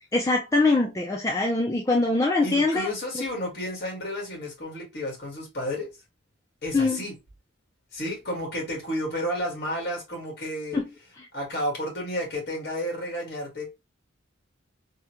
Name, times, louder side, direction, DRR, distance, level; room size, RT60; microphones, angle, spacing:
voice 1, 0.1-2.9 6.7-7.0 10.7-10.8, left 3 dB, 15° left, 0.4 m, -23 dB
voice 2, 2.4-5.9 6.6-7.2 7.9-10.8 11.3-13.6, equal, 55° left, 1.8 m, -31 dB
3.5 x 2.2 x 2.9 m
head